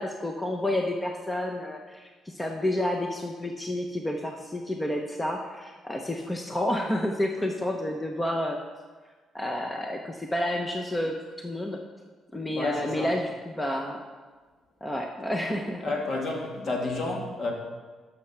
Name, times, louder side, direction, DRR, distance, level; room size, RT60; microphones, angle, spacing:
voice 1, 0.0-8.6 9.3-11.8 12.3-14.0 14.8-15.8, left 1 dB, 10° left, 2 dB, 0.9 m, -30 dB
voice 2, 12.6-13.1 15.8-17.5, left 2 dB, 50° left, -1 dB, 2.6 m, -30 dB
12.0 x 6.7 x 6.1 m, 1.4 s
cardioid pair, 110°, 0 cm